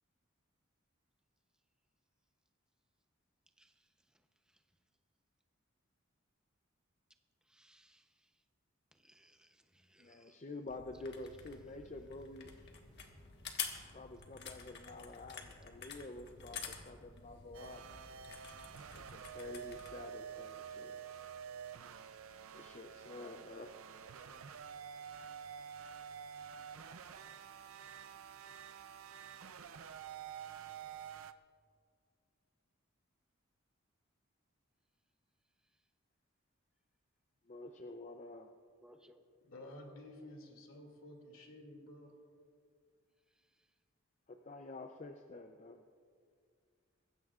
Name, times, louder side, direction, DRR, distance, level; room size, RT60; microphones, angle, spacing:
voice 1, 3.6-4.6 7.4-8.4 8.9-10.5 10.9-11.7 38.8-39.2 43.3-43.7, right 1 dB, 5° right, 6 dB, 0.7 m, -67 dB
voice 2, 10.0-12.6 13.9-17.9 19.0-21.0 22.5-23.7 37.5-38.5 44.3-45.8, left 2 dB, 35° left, 5 dB, 0.5 m, -49 dB
sound 1, 10.7-19.9, left 6 dB, 55° left, 1.4 m, -48 dB
sound 2, 17.5-31.3, right 7 dB, 85° right, 0.5 m, -49 dB
voice 3, 39.4-42.1, left 1 dB, 75° left, 2 dB, 2.4 m, -52 dB
21.5 x 16.0 x 2.4 m, 2.1 s
head